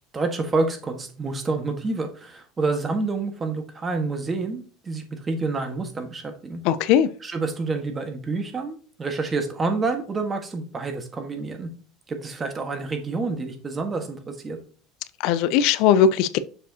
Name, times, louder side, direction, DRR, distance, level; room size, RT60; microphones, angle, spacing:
voice 1, 0.1-6.6 7.2-11.7 12.1-14.6, right 3 dB, 25° right, 6 dB, 1.4 m, -28 dB
voice 2, 6.6-7.1 15.2-16.4, left 8 dB, 70° left, 15 dB, 0.4 m, -19 dB
6.9 x 4.8 x 2.8 m, 0.42 s
supercardioid pair, 100°, 0 cm